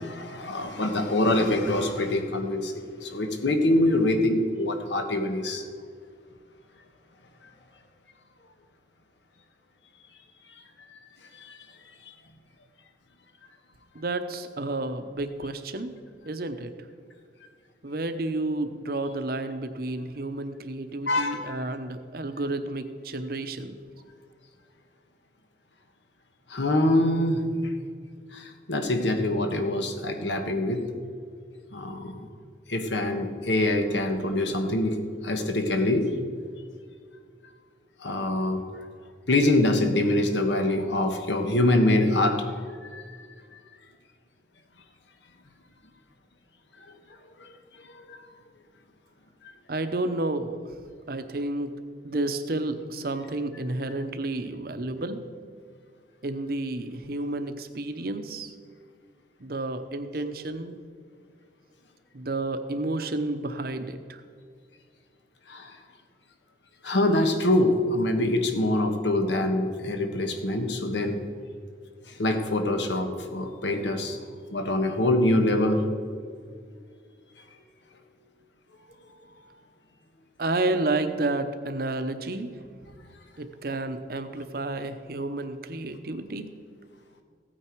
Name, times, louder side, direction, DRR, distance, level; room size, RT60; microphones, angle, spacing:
voice 1, 0.0-5.6 11.5-11.6 21.1-21.6 26.5-27.5 28.3-30.8 31.7-32.3 32.7-36.1 38.0-38.6 39.3-42.4 42.8-43.0 47.4-47.5 47.9-48.0 65.5-65.7 66.8-71.2 72.2-74.2 74.5-75.8, left 1 dB, 85° left, 5 dB, 1.4 m, -24 dB
voice 2, 13.9-15.9 16.3-16.7 17.8-23.7 49.7-50.6 51.1-51.7 52.0-55.2 56.2-58.5 59.4-60.7 62.1-64.2 80.4-82.5 83.4-86.5, right 2 dB, 55° right, 9 dB, 0.8 m, -31 dB
15.0 x 9.0 x 4.6 m, 2.1 s
head